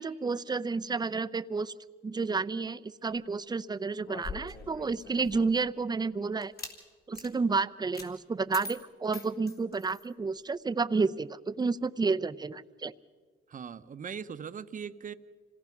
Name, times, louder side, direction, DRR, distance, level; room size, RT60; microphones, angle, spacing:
voice 1, 0.0-1.7 2.0-6.5 7.1-12.9, right 4 dB, 20° right, 13 dB, 0.6 m, -30 dB
sound 1, 4.0-5.6 6.4-6.8 7.1-7.3 7.9-8.1 8.5-10.1, left 4 dB, 50° left, 3.2 m, -43 dB
voice 2, 13.5-15.1, right 7 dB, 40° right, 11 dB, 0.9 m, -40 dB
26.5 x 17.5 x 6.0 m, 1.4 s
cardioid pair, 90°, 20 cm